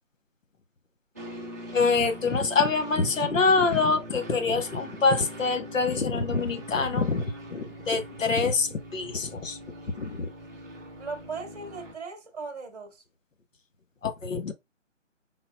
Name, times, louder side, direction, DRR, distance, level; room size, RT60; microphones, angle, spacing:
sound 1, 1.2-11.9, equal, 15° right, 0.6 m, -42 dB
voice 1, 1.7-7.3 7.5-9.6 10.0-10.3 14.0-14.5, left 4 dB, 85° left, 1.1 m, -25 dB
voice 2, 11.0-13.0, right 4 dB, 30° right, 1.1 m, -38 dB
4.2 x 3.9 x 2.2 m
hypercardioid pair, 170°, 38 cm